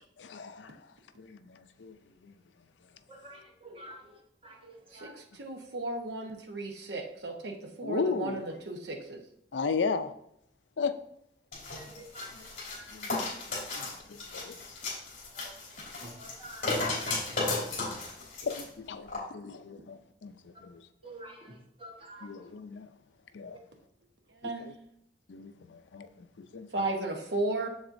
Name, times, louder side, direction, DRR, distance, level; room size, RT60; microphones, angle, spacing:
voice 1, 0.2-0.8 1.2-1.9 2.2-2.3 7.8-8.5 9.5-10.1 10.8-11.0 12.9-13.3 13.7-14.6 18.4-20.8 22.2-22.9 23.3-23.6 24.4-24.7 25.3-26.9, left 5 dB, 80° left, 0.5 m, -36 dB
voice 2, 3.1-4.1 4.4-5.1 11.7-12.9 13.7-13.9 15.4-15.5 16.0-16.7 21.0-22.3, right 1 dB, 30° right, 1.1 m, -48 dB
voice 3, 4.9-9.2 24.4-24.7 26.7-27.7, right 2 dB, 70° right, 1.0 m, -35 dB
sound 1, 11.5-18.6 19.1-19.2, left 3 dB, 50° left, 3.0 m, -35 dB
7.3 x 7.2 x 2.6 m
head